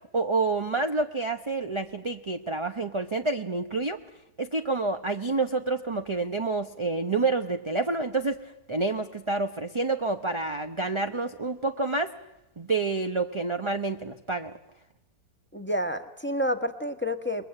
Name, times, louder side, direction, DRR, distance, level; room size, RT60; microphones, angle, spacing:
voice 1, 0.1-4.0 4.4-12.1 12.6-14.5, right 3 dB, 30° right, 7 dB, 0.6 m, -28 dB
voice 2, 15.5-17.4, equal, 5° left, 7 dB, 1.1 m, -29 dB
28.5 x 22.0 x 7.8 m, 0.96 s
omnidirectional pair, 1.8 m